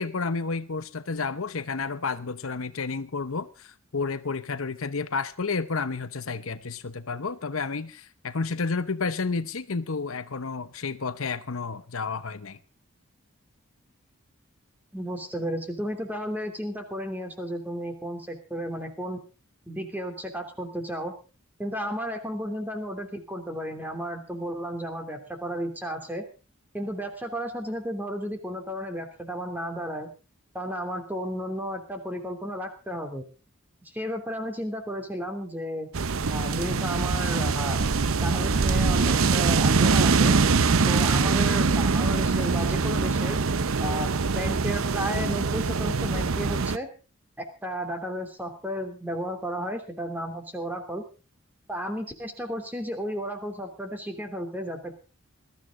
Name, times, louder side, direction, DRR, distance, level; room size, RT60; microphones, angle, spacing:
voice 1, 0.0-12.6, left 4 dB, 70° left, 0.9 m, -31 dB
voice 2, 14.9-19.2 19.7-21.1 21.6-26.2 26.7-30.1 30.5-33.2 33.9-35.9 36.3-37.8 38.0-40.4 40.9-43.4 43.8-46.9 47.6-51.0 51.7-54.9, equal, 10° right, 3.0 m, -33 dB
sound 1, 35.9-46.8, right 4 dB, 70° right, 0.7 m, -23 dB
21.0 x 13.0 x 3.7 m
head